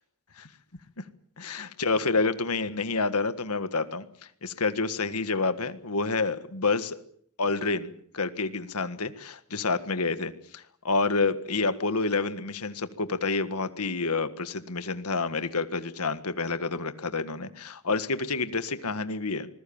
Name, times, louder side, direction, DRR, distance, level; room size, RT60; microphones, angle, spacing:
voice 1, 1.4-4.1 4.4-7.0 7.4-19.5, left 3 dB, 90° left, 11 dB, 1.7 m, -28 dB
27.0 x 20.5 x 7.2 m, 0.64 s
head